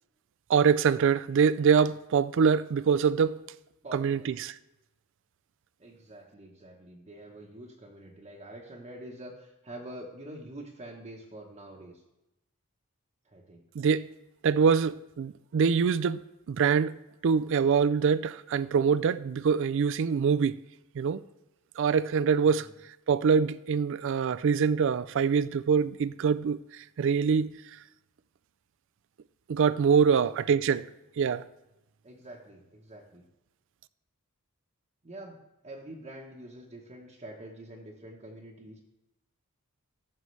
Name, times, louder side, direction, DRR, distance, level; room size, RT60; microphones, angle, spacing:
voice 1, 0.5-3.5 3.9-4.5 13.8-14.1 14.4-16.2 16.5-17.0 17.2-20.6 20.9-21.2 21.8-22.7 23.1-27.5 29.5-30.9 31.2-31.5, right 6 dB, 55° right, 0.3 m, -24 dB
voice 2, 3.8-4.3 5.8-12.0 13.2-13.6 22.4-22.7 30.0-30.2 32.0-33.2 35.0-38.8, right 1 dB, 30° right, 1.0 m, -46 dB
14.5 x 6.3 x 3.2 m
head